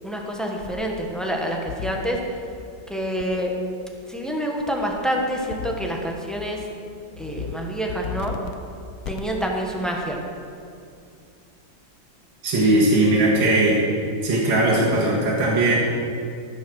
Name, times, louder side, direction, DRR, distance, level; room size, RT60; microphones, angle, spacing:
voice 1, 0.0-2.2 2.9-3.5 4.1-6.7 7.2-8.4 9.1-10.2, equal, ahead, 0 dB, 0.8 m, -27 dB
sound 1, 1.7-2.2 3.2-3.3 5.5-6.0 6.4-6.7 7.1-7.5 7.9-8.5 9.0-9.5, left 7 dB, 65° left, 0.9 m, -33 dB
voice 2, 12.4-13.8 14.2-15.8, right 2 dB, 75° right, -5 dB, 2.5 m, -19 dB
14.5 x 6.2 x 6.4 m, 2.5 s
omnidirectional pair, 2.2 m